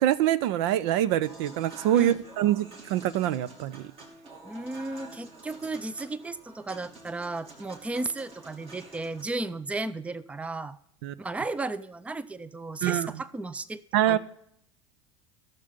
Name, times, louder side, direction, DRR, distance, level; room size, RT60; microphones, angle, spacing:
voice 1, 0.0-3.9 11.0-11.1 12.8-13.1 13.9-14.2, right 12 dB, 65° right, 18 dB, 0.5 m, -25 dB
Human voice / Acoustic guitar / Piano, 1.2-9.2, right 2 dB, 40° right, 2.7 m, -48 dB
voice 2, 4.4-10.8 11.2-14.2, right 2 dB, 10° right, 16 dB, 0.5 m, -34 dB
13.5 x 6.8 x 5.2 m, 0.71 s
hypercardioid pair, 80°, 15 cm